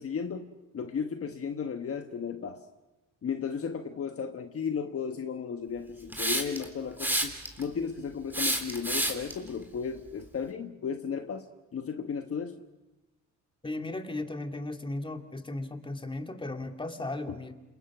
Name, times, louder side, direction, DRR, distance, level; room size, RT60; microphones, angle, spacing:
voice 1, 0.0-2.7 3.2-11.5 11.7-12.6, left 6 dB, 50° left, 6 dB, 1.4 m, -35 dB
Hiss, 6.1-6.6 7.0-7.6 8.3-9.3, right 1 dB, 5° right, 3.7 m, -28 dB
voice 2, 13.6-17.5, left 2 dB, 15° left, 5 dB, 2.6 m, -36 dB
29.5 x 27.5 x 6.1 m, 1.1 s
cardioid pair, 90°, 30 cm